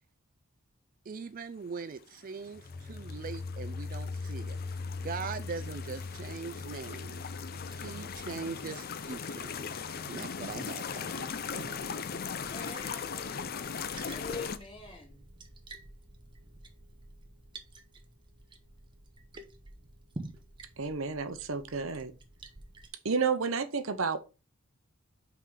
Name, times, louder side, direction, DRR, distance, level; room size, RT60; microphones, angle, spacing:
voice 1, 1.0-7.3 7.7-9.7 10.0-11.8, right 5 dB, 40° right, 0.4 m, -41 dB
sound 1, 2.4-11.4, left 3 dB, 10° left, 1.9 m, -42 dB
sound 2, 2.5-14.6, left 6 dB, 45° left, 0.5 m, -39 dB
Liquid, 3.9-22.9, right 2 dB, 20° right, 0.9 m, -52 dB
voice 2, 12.5-13.4 14.1-15.2, left 3 dB, 25° left, 2.4 m, -44 dB
voice 3, 20.8-22.1 23.0-24.2, right 5 dB, 65° right, 0.8 m, -31 dB
5.8 x 4.6 x 4.9 m
head